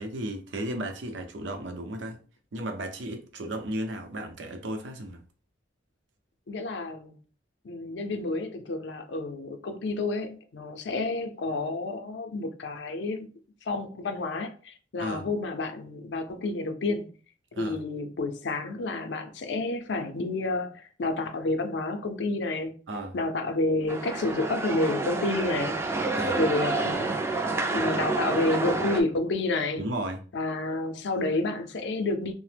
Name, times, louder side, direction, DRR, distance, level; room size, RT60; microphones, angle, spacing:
voice 1, 0.0-2.2 2.5-5.2 15.0-15.3 17.6-17.8 22.9-23.2 26.1-26.4 29.8-30.2, right 1 dB, 85° right, 0.6 m, -34 dB
voice 2, 6.5-7.1 7.6-13.3 13.6-17.1 17.6-22.8 23.1-25.8 26.4-27.5 27.7-29.8 30.3-32.3, left 2 dB, 70° left, 0.5 m, -30 dB
sound 1, 23.9-29.0, right 3 dB, 15° right, 0.3 m, -29 dB
2.8 x 2.0 x 3.3 m
head